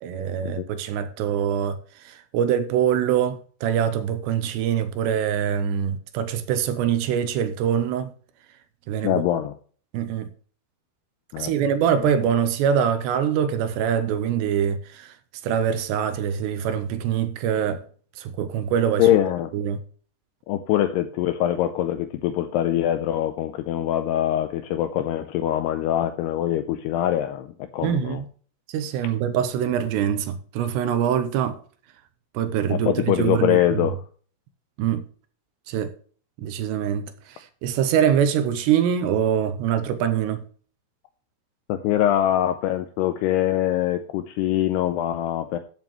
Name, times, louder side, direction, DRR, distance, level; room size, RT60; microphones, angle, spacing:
voice 1, 0.0-8.1 8.9-9.2 9.9-10.3 11.4-15.1 15.4-17.8 18.2-19.1 19.5-19.8 27.8-28.3 28.7-31.6 32.3-33.9 34.8-35.0 35.7-35.9 36.4-40.4, right 8 dB, 80° right, 2.7 m, -24 dB
voice 2, 9.0-9.5 11.3-11.5 19.0-19.5 20.5-28.2 32.7-34.0 41.7-45.6, left 12 dB, 85° left, 2.4 m, -23 dB
14.0 x 7.3 x 3.1 m
omnidirectional pair, 5.3 m